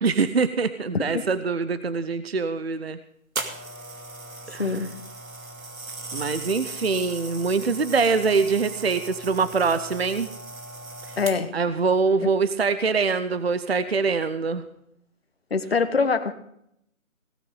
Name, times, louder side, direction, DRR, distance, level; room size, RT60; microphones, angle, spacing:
voice 1, 0.0-3.0 4.5-4.9 6.1-10.3 11.1-11.2 11.5-14.6, right 4 dB, 50° right, 12 dB, 0.7 m, -24 dB
sound 1, 3.4-11.7 12.4-12.6, right 2 dB, 80° right, 2.3 m, -38 dB
voice 2, 4.6-4.9 11.2-11.5 12.2-12.3 15.5-16.3, left 4 dB, 45° left, 10 dB, 1.2 m, -24 dB
17.5 x 9.3 x 4.9 m, 0.75 s
figure-of-eight pair, 165°, 41 cm